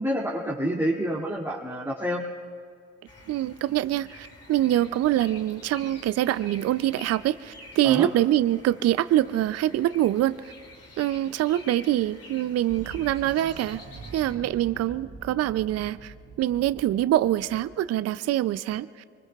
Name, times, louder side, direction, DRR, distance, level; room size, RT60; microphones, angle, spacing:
voice 1, 0.0-2.2 7.8-8.1, equal, 10° right, -6 dB, 2.4 m, -28 dB
sound 1, 3.0-14.4, left 2 dB, 50° left, 2.7 m, -48 dB
voice 2, 3.3-10.5 11.0-13.8 14.1-18.9, right 13 dB, 55° right, 15 dB, 0.5 m, -25 dB
sound 2, 12.7-17.9, right 4 dB, 75° right, 2.8 m, -45 dB
25.0 x 23.5 x 2.4 m, 2.1 s
hypercardioid pair, 50°, 31 cm